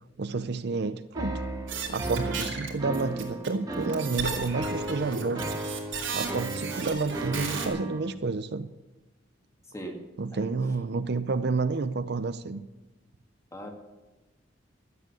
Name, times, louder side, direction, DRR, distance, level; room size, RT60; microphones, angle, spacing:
voice 1, 0.2-1.4 1.9-5.4 6.1-8.7 10.2-12.6, right 4 dB, 60° right, 13 dB, 0.6 m, -30 dB
sound 1, 1.1-8.0, right 2 dB, 20° right, 2.3 m, -35 dB
sound 2, 1.7-7.7, right 5 dB, 85° right, 3.2 m, -34 dB
voice 2, 9.7-10.0 10.3-10.5 13.5-13.7, right 1 dB, 15° left, 2 dB, 2.1 m, -38 dB
13.0 x 7.9 x 9.0 m, 1.1 s
head